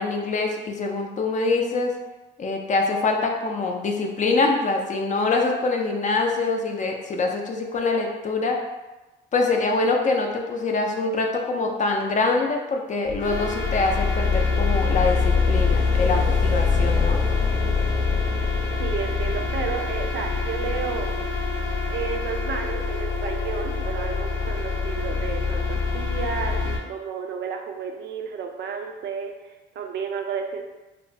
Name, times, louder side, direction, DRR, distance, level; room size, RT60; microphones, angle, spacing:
voice 1, 0.0-1.9 2.4-8.6 9.3-17.2, left 3 dB, 40° left, 2 dB, 0.4 m, -24 dB
sound 1, 13.1-26.8, left 4 dB, 75° left, 0.7 m, -24 dB
voice 2, 18.8-21.1 21.8-30.7, right 6 dB, 65° right, 4 dB, 0.4 m, -32 dB
2.9 x 2.1 x 2.6 m, 1.1 s
cardioid pair, 90°, 20 cm